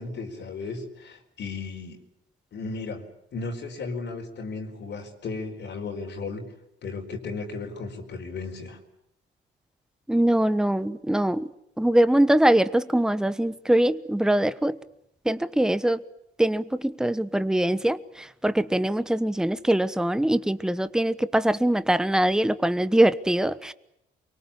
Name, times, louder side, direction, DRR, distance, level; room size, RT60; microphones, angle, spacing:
voice 1, 0.0-2.0 2.5-6.5 6.8-8.8, left 3 dB, 65° left, 1 dB, 4.5 m, -35 dB
voice 2, 10.1-11.5 11.8-14.7 15.3-16.0 16.4-18.0 18.4-23.7, right 1 dB, 5° right, 14 dB, 1.1 m, -22 dB
24.5 x 23.0 x 8.7 m, 0.82 s
cardioid pair, 90°, 20 cm